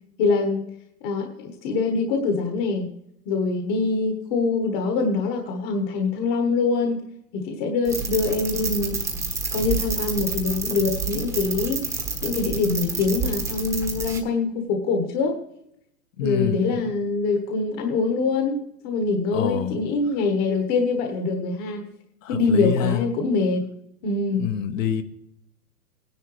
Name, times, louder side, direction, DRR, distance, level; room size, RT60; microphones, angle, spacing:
voice 1, 0.2-0.6 1.0-2.9 3.3-7.0 7.3-9.0 9.5-15.4 16.2-21.8 22.3-23.6 24.0-24.5, left 4 dB, 30° left, 1.4 m, -24 dB
sound 1, 7.8-14.2, right 4 dB, 5° right, 1.2 m, -29 dB
voice 2, 16.2-16.8 19.3-19.8 22.2-23.0 24.3-25.0, left 8 dB, 55° left, 1.2 m, -26 dB
17.5 x 10.5 x 3.3 m
hypercardioid pair, 145°, 48 cm